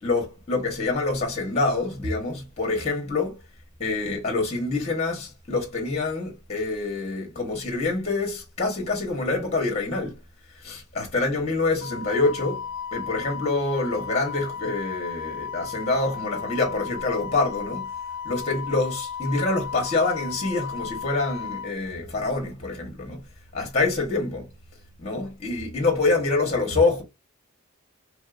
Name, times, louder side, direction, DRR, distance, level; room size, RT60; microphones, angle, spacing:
voice 1, 0.0-3.4 3.8-10.2 10.5-12.6 12.9-17.9 18.2-23.2 23.5-24.5 25.0-27.0, left 3 dB, 30° left, 1.1 m, -26 dB
Wind instrument woodwind instrument, 11.8-21.7, left 7 dB, 55° left, 0.4 m, -35 dB
3.3 x 2.7 x 2.3 m
head